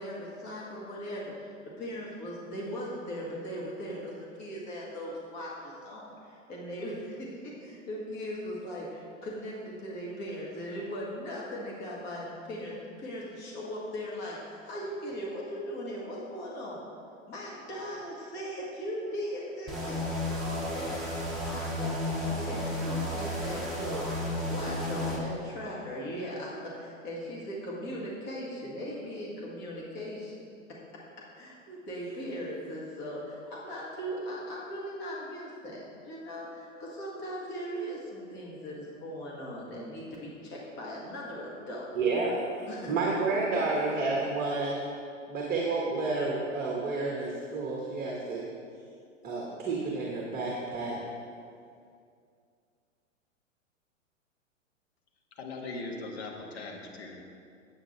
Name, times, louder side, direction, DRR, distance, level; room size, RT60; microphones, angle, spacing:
voice 1, 0.0-16.8 17.3-21.0 21.4-21.9 22.2-30.5 31.4-41.9 42.7-44.1, equal, 25° left, -4 dB, 1.9 m, -39 dB
sound 1, 19.7-25.2, left 1 dB, ahead, 1.4 m, -32 dB
voice 2, 41.9-42.3 42.9-44.7 45.3-48.4 49.2-51.0, right 3 dB, 20° right, -3 dB, 1.3 m, -30 dB
voice 3, 55.4-57.2, left 3 dB, 50° left, 1 dB, 1.6 m, -39 dB
8.9 x 8.2 x 4.3 m, 2.4 s
figure-of-eight pair, 105°, 39 cm